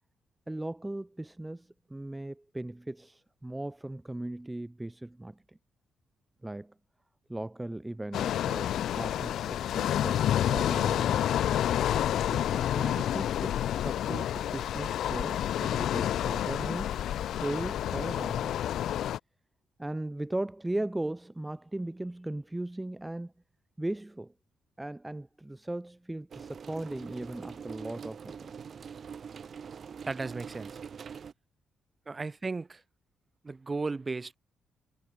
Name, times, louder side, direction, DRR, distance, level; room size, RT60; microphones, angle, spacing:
voice 1, 0.5-5.6 6.4-6.7 7.3-11.3 12.3-18.5 19.8-23.3 23.8-24.3 24.8-28.5, right 1 dB, 10° right, 0.9 m, -38 dB
sound 1, 8.1-19.2, left 11 dB, 75° left, 0.3 m, -29 dB
sound 2, 26.3-31.3, right 6 dB, 50° right, 4.1 m, -44 dB
voice 2, 30.1-30.8 32.1-32.8 33.4-34.4, right 3 dB, 25° right, 1.5 m, -35 dB
cardioid pair, 90°, 0 cm